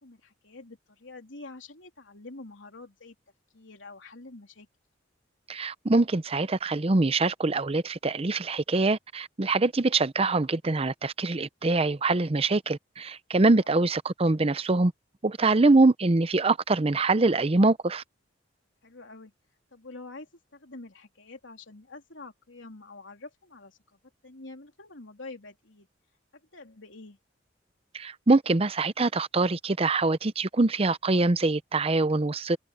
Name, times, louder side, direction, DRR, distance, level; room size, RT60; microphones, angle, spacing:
voice 1, 0.0-3.1 3.5-4.7 13.6-13.7 18.8-19.3 19.7-25.9 26.5-27.2, left 3 dB, 80° left, 3.4 m, -46 dB
voice 2, 5.5-14.9 15.2-18.0 27.9-32.6, right 3 dB, 30° right, 0.7 m, -24 dB
head